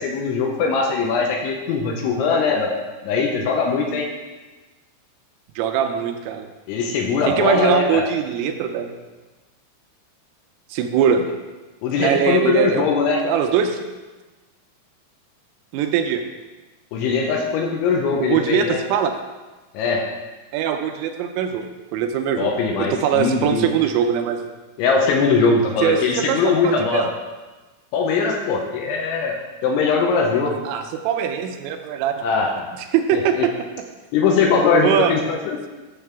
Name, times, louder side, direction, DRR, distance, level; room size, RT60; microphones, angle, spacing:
voice 1, 0.0-2.7 3.0-4.1 6.7-8.0 11.8-13.2 16.9-18.8 19.7-20.0 22.4-23.7 24.8-27.1 27.9-30.6 32.2-32.5 33.4-33.5 34.1-35.6, left 4 dB, 80° left, 1 dB, 2.9 m, -20 dB
voice 2, 5.6-6.5 7.3-9.0 10.7-11.2 12.0-12.9 13.2-13.8 15.7-16.2 18.2-19.1 20.5-22.5 22.8-24.4 25.8-26.0 26.3-27.1 30.6-32.1 32.7-33.5 34.8-35.2, right 8 dB, 85° right, 6 dB, 3.1 m, -21 dB
10.5 x 7.3 x 3.4 m, 1.2 s
omnidirectional pair, 5.9 m